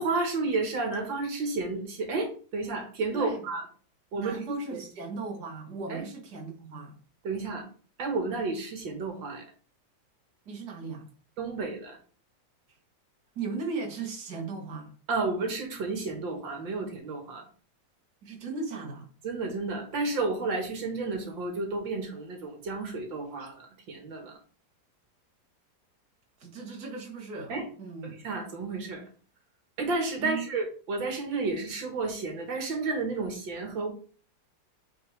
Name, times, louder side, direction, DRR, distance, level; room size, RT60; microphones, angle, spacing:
voice 1, 0.0-3.6 4.1-4.8 5.9-6.0 7.2-7.7 8.0-9.5 11.4-12.0 15.1-17.5 19.2-24.3 27.5-27.7 28.0-29.0 29.8-33.9, right 3 dB, 80° right, 2.2 m, -31 dB
voice 2, 3.1-3.5 4.1-7.0 10.5-11.1 13.4-14.9 18.2-19.1 26.4-27.5 27.8-28.1 30.2-30.5, right 4 dB, 55° right, 2.1 m, -37 dB
8.9 x 4.2 x 3.3 m
omnidirectional pair, 2.0 m